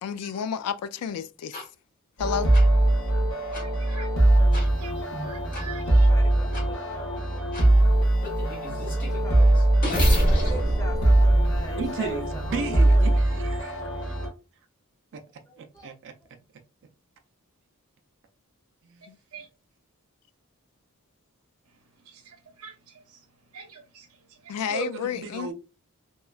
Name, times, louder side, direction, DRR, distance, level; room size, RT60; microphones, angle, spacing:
voice 1, 0.0-1.6 2.2-2.5 19.1-19.2 24.5-25.5, left 7 dB, 85° left, 0.3 m, -30 dB
sound 1, 1.5-1.6 2.5-2.6 3.5-3.6 4.5-4.7 5.5-5.6 6.5-6.6 7.5-7.7 8.2-12.1, equal, 40° left, 1.2 m, -27 dB
sound 2, 2.2-14.3, right 1 dB, 65° left, 1.2 m, -22 dB
voice 2, 3.4-4.1 4.5-6.1 19.3-19.5 22.1-22.7 23.1-23.2 23.5-24.1 24.4-24.5, right 4 dB, 85° right, 0.8 m, -44 dB
voice 3, 5.9-7.7 8.9-9.6 10.3-13.4 15.5-15.9, right 1 dB, 15° left, 0.7 m, -42 dB
voice 4, 11.8-14.1 15.6-16.1 18.8-19.1 24.7-25.5, right 5 dB, 55° right, 0.4 m, -34 dB
3.0 x 2.3 x 2.3 m
head